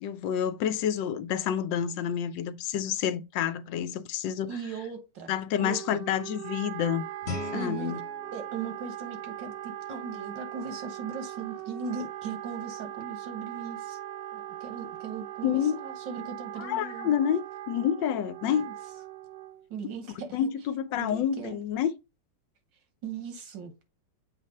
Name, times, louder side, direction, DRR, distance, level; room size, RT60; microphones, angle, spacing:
voice 1, 0.0-4.6 5.3-7.1 7.5-8.0 15.4-15.8 16.6-18.6 20.3-21.9, left 9 dB, 85° left, 1.3 m, -28 dB
voice 2, 4.5-6.0 7.5-8.0 8.3-14.0 14.3-17.2 18.5-18.7 19.7-20.5 20.9-21.6 23.0-23.7, right 5 dB, 90° right, 2.0 m, -38 dB
Wind instrument woodwind instrument, 5.6-19.7, right 12 dB, 60° right, 1.1 m, -40 dB
Guitar, 7.2-10.0, left 2 dB, 45° left, 1.1 m, -40 dB
7.5 x 2.6 x 5.3 m
omnidirectional pair, 1.9 m